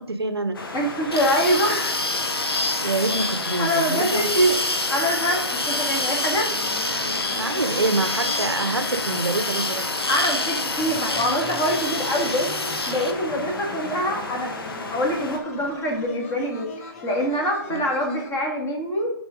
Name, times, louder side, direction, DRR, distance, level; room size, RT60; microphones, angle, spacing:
voice 1, 0.0-0.6 2.8-4.5 7.3-9.9 17.7-17.8, right 3 dB, 85° right, 10 dB, 0.7 m, -26 dB
sound 1, 0.5-15.4, left 2 dB, 65° left, 1.3 m, -34 dB
voice 2, 0.7-2.0 3.6-4.6 4.9-6.5 10.1-14.5 14.9-19.1, equal, 20° left, 0 dB, 1.8 m, -24 dB
sound 2, 1.1-13.1, left 2 dB, 80° left, 1.1 m, -27 dB
sound 3, 6.5-18.3, left 3 dB, 40° left, 1.2 m, -39 dB
7.0 x 3.8 x 5.0 m, 0.72 s
figure-of-eight pair, 130°, 13 cm